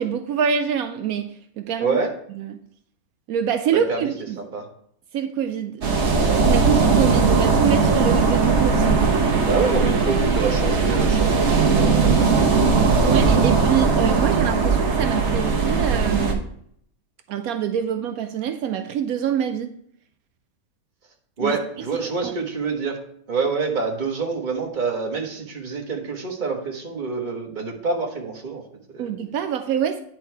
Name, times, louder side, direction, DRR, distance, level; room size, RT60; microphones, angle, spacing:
voice 1, 0.0-2.0 2.4-2.6 3.3-4.4 5.1-5.8 6.4-9.3 12.8-16.4 17.3-19.7 21.4-21.6 22.0-22.3 29.0-30.0, right 8 dB, 80° right, 8 dB, 1.1 m, -25 dB
voice 2, 1.8-2.1 3.7-4.1 4.4-4.7 9.4-13.0 21.4-23.0 23.3-29.1, right 4 dB, 35° right, 1 dB, 1.4 m, -27 dB
sound 1, 5.8-16.3, right 4 dB, 55° right, 1.3 m, -19 dB
9.9 x 4.6 x 4.5 m, 0.68 s
omnidirectional pair, 1.5 m